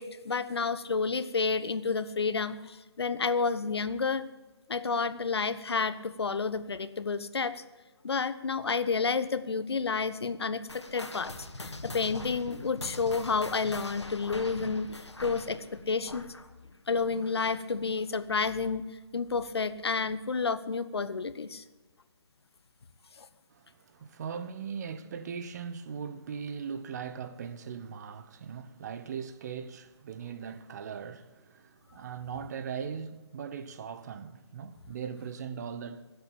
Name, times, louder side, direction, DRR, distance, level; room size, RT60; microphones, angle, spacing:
voice 1, 0.0-4.3 4.7-7.6 8.0-11.3 11.6-16.2 16.9-18.8 19.1-21.6, left 4 dB, 65° left, 1.1 m, -30 dB
sound 1, 10.7-17.5 17.8-18.1 18.7-18.8 19.6-19.7, left 2 dB, 85° left, 1.8 m, -42 dB
voice 2, 23.5-36.1, right 7 dB, 40° right, 1.0 m, -39 dB
19.0 x 8.0 x 8.7 m
figure-of-eight pair, 145°, 14 cm